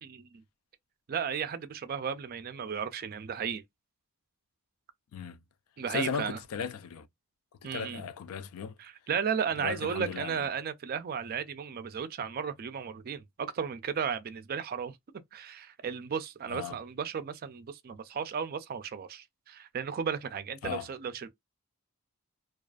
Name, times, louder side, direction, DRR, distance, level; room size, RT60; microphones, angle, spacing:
voice 1, 0.0-0.4 1.1-3.6 5.8-6.4 7.6-8.0 8.8-15.0 15.3-21.3, right 7 dB, 45° right, 0.4 m, -34 dB
voice 2, 5.9-7.1 7.6-8.8 9.6-10.5 16.5-16.8 20.6-20.9, left 6 dB, 90° left, 0.3 m, -36 dB
2.4 x 2.3 x 2.2 m
head